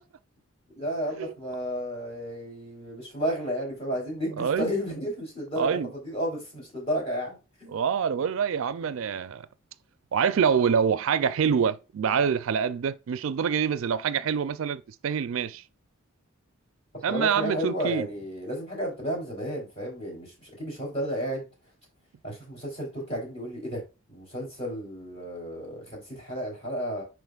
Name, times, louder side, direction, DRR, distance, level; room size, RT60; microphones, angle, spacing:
voice 1, 0.7-5.8 6.0-7.7 17.1-21.5 22.2-23.8 24.1-27.0, equal, 30° left, 3.2 m, -32 dB
voice 2, 4.4-4.7 5.6-5.9 7.7-9.5 10.1-15.6 17.0-18.1, right 7 dB, 75° right, 0.4 m, -26 dB
10.5 x 3.8 x 2.4 m
head